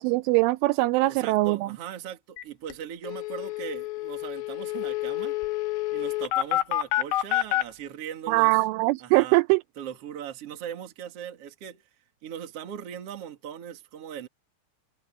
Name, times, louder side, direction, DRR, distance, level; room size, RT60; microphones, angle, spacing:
voice 1, 0.0-1.7 8.3-9.6, right 21 dB, 85° right, 3.0 m, -22 dB
voice 2, 1.1-5.3 5.9-8.5 9.0-9.4 9.8-11.8 12.2-14.3, right 9 dB, 45° right, 2.1 m, -39 dB
sound 1, 2.4-2.5 2.7-2.8 3.0-7.6, left 15 dB, 75° left, 2.9 m, -28 dB
omnidirectional pair, 5.6 m